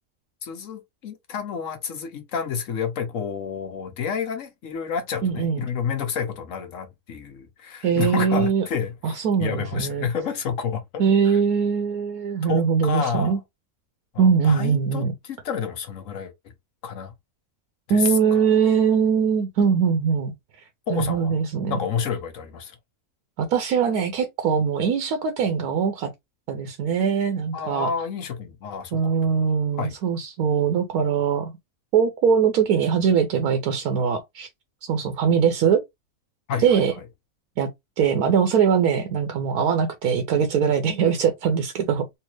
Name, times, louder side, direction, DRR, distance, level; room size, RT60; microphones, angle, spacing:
voice 1, 0.4-11.4 12.4-13.4 14.1-16.3 16.8-17.1 17.9-18.4 20.9-21.4 21.7-22.8 27.5-29.1 29.7-29.9 36.5-37.0, left 7 dB, 60° left, 1.2 m, -30 dB
voice 2, 5.2-5.6 7.8-8.6 9.0-10.1 11.0-13.4 14.2-15.1 17.9-20.3 20.9-21.8 23.4-26.1 26.5-27.9 28.9-31.5 31.9-34.5 34.8-35.8 36.6-36.9 37.6-37.7 38.0-42.1, right 6 dB, 80° right, 1.1 m, -21 dB
3.3 x 2.8 x 3.0 m
omnidirectional pair, 1.6 m